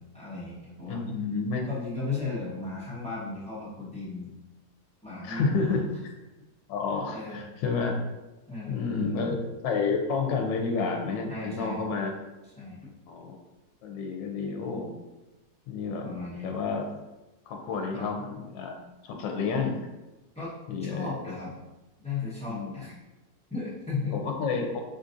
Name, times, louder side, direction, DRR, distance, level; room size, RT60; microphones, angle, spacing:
voice 1, 0.0-1.0 1.6-4.3 5.0-5.8 7.1-7.4 8.5-9.4 11.3-11.8 12.6-12.9 16.0-16.5 17.9-18.1 20.3-20.5 20.9-21.5 22.0-22.9 23.5-24.3, left 3 dB, 5° left, -10 dB, 0.8 m, -35 dB
voice 2, 0.9-1.7 5.2-5.8 6.7-7.9 8.7-9.4 9.6-12.1 13.1-13.4 13.8-15.0 15.7-16.1 16.4-16.9 17.5-18.7 19.0-19.8 20.7-21.1 22.5-22.8 24.1-24.8, left 4 dB, 85° left, 3 dB, 1.3 m, -30 dB
4.7 x 2.5 x 2.6 m, 1.0 s
omnidirectional pair, 1.9 m